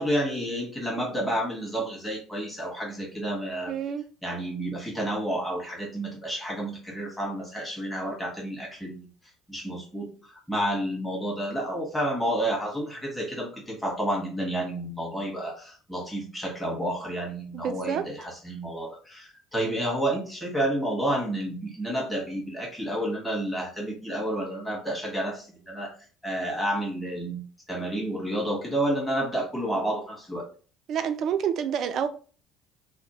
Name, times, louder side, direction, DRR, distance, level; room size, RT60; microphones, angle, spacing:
voice 1, 0.0-3.8 4.2-9.1 9.5-25.9 26.2-30.5, right 1 dB, 5° left, 1.3 m, -30 dB
voice 2, 3.7-4.0 17.5-18.1 30.9-32.1, right 8 dB, 50° right, 0.3 m, -28 dB
2.8 x 2.0 x 2.9 m
figure-of-eight pair, 60°, 0 cm